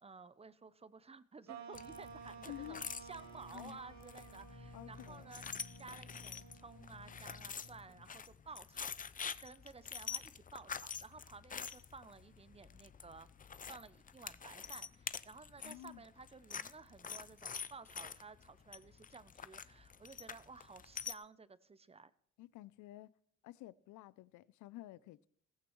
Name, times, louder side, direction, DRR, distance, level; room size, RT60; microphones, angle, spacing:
voice 1, 0.0-5.4 5.8-13.3 13.7-22.1, right 4 dB, 20° right, 0.6 m, -54 dB
sound 1, 1.5-8.2, right 6 dB, 65° right, 1.3 m, -55 dB
sound 2, 1.7-21.1, left 6 dB, 30° left, 0.5 m, -47 dB
voice 2, 2.5-2.8 3.5-3.8 4.7-5.3 15.6-16.0 22.4-23.1 23.4-25.3, left 15 dB, 80° left, 0.5 m, -51 dB
15.0 x 14.5 x 3.1 m
cardioid pair, 90°, 30 cm